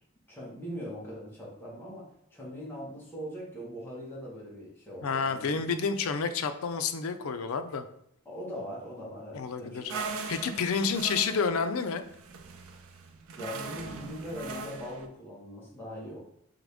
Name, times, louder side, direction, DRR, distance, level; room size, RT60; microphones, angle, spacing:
voice 1, 0.3-5.6 8.2-10.6 13.4-16.2, equal, 10° left, -6 dB, 1.4 m, -41 dB
voice 2, 5.0-7.9 9.3-9.9 10.3-12.0, left 5 dB, 85° left, 9 dB, 0.5 m, -29 dB
sound 1, 9.9-15.1, right 4 dB, 85° right, 0.5 m, -40 dB
3.8 x 3.5 x 3.5 m, 0.76 s
head